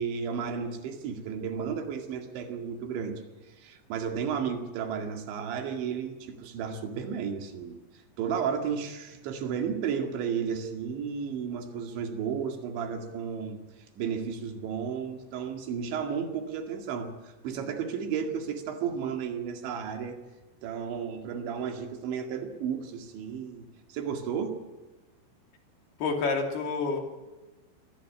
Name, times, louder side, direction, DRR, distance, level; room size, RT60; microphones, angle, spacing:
voice 1, 0.0-3.2 3.5-7.8 8.2-13.6 14.0-20.2 20.6-24.6, right 7 dB, 70° right, 5 dB, 4.3 m, -33 dB
voice 2, 26.0-27.0, left 4 dB, 55° left, 4 dB, 4.4 m, -28 dB
25.0 x 19.0 x 8.8 m, 1.1 s
omnidirectional pair, 5.7 m